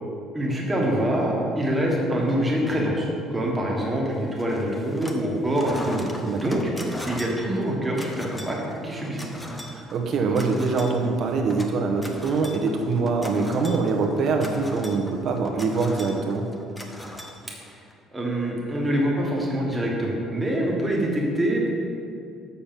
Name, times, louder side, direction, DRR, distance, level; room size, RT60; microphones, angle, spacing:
voice 1, 0.3-6.7 7.0-8.6 8.8-9.3 18.1-21.7, right 1 dB, 10° right, -3 dB, 1.4 m, -25 dB
sound 1, 4.4-5.3 5.5-17.9, left 1 dB, 5° left, 0.6 m, -40 dB
voice 2, 9.7-16.4, right 4 dB, 45° right, 2 dB, 1.0 m, -24 dB
7.0 x 6.7 x 5.8 m, 2.4 s
cardioid pair, 165°, 0 cm